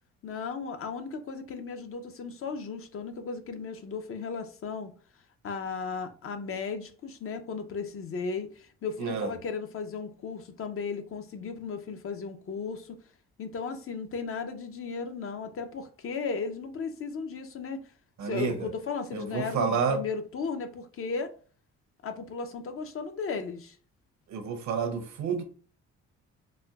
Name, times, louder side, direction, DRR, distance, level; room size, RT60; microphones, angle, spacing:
voice 1, 0.2-4.9 5.4-13.0 13.4-17.8 18.2-21.3 22.0-23.8, left 5 dB, 45° left, 0.6 m, -35 dB
voice 2, 9.0-9.3 18.2-18.7 19.1-20.0 24.3-25.4, right 5 dB, 65° right, 0.8 m, -29 dB
4.2 x 2.2 x 2.3 m
cardioid pair, 90°, 30 cm